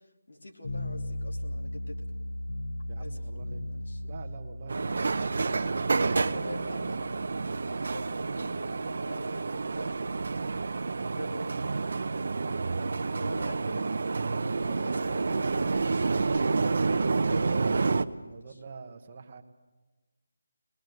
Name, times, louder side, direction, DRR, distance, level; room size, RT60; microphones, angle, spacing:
voice 1, 0.3-2.4 3.0-4.0 6.3-7.0 7.9-10.0 11.1-11.9 13.1-13.9 14.5-16.8 17.2-18.6, left 1 dB, 70° left, 0 dB, 3.3 m, -45 dB
sound 1, 0.6-11.8, left 1 dB, 50° left, 4.0 m, -39 dB
voice 2, 2.9-3.7 4.0-6.8 12.4-13.4 14.4-15.2 18.2-19.4, right 4 dB, 25° right, 5 dB, 1.1 m, -46 dB
sound 2, 4.7-18.0, right 4 dB, 45° right, 0.7 m, -29 dB
23.0 x 20.5 x 7.9 m, 1.2 s
figure-of-eight pair, 175°, 0 cm